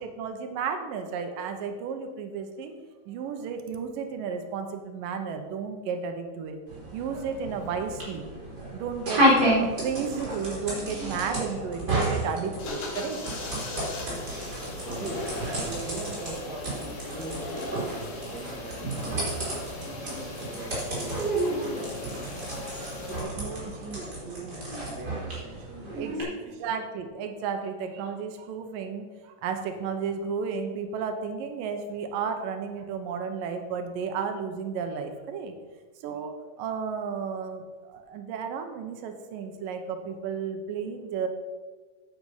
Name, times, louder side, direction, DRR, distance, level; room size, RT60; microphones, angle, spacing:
voice 1, 0.0-2.7 3.1-6.6 6.9-8.3 8.7-13.2 22.8-23.0 26.0-26.1 26.6-35.6 36.0-41.3, right 6 dB, 85° right, 6 dB, 2.6 m, -33 dB
sound 1, 6.7-26.2, right 1 dB, 30° right, 4.4 m, -31 dB
sound 2, 12.6-23.2, left 3 dB, 70° left, 3.2 m, -39 dB
voice 2, 14.9-19.6 20.0-22.3 23.0-26.8, right 3 dB, 45° right, 2 dB, 1.5 m, -42 dB
9.2 x 8.7 x 5.6 m, 1.4 s
omnidirectional pair, 3.8 m